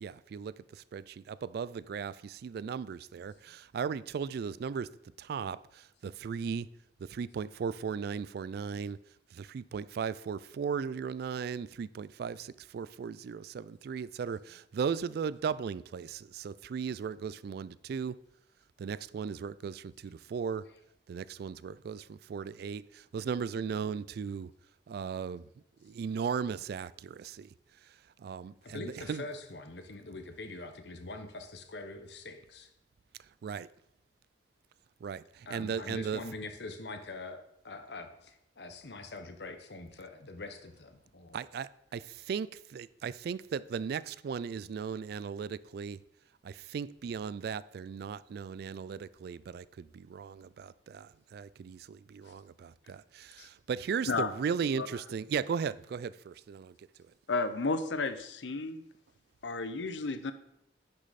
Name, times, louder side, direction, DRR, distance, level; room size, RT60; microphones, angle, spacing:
voice 1, 0.0-4.9 5.2-6.7 7.1-9.0 9.3-18.1 18.8-20.6 21.1-24.5 24.9-25.5 25.8-27.5 28.2-29.2 33.4-33.7 35.0-36.2 41.3-46.0 46.4-56.7, right 6 dB, 60° right, 0.3 m, -37 dB
voice 2, 28.6-32.7 35.5-41.4 52.2-52.4 52.8-52.9 53.4-53.5, left 2 dB, 65° left, 1.1 m, -44 dB
voice 3, 57.3-58.8 59.4-60.3, left 3 dB, 85° left, 0.7 m, -32 dB
10.0 x 6.5 x 4.1 m
head